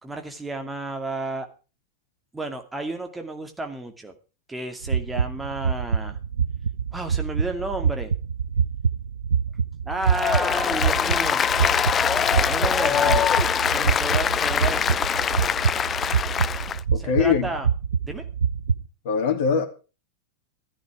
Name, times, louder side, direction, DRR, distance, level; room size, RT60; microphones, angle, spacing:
voice 1, 0.0-1.5 2.3-4.1 4.5-6.2 6.9-8.1 9.9-11.4 12.4-13.3 13.7-15.0 16.9-17.7 18.0-18.2, right 2 dB, 10° right, 5 dB, 2.4 m, -32 dB
sound 1, 4.8-18.8, right 6 dB, 70° right, 0.7 m, -26 dB
Applause, 10.0-16.8, left 8 dB, 25° left, 0.6 m, -23 dB
voice 2, 16.9-17.5 19.0-19.7, left 6 dB, 50° left, 8 dB, 2.9 m, -22 dB
14.0 x 13.5 x 4.8 m, 0.34 s
figure-of-eight pair, 90°, 0 cm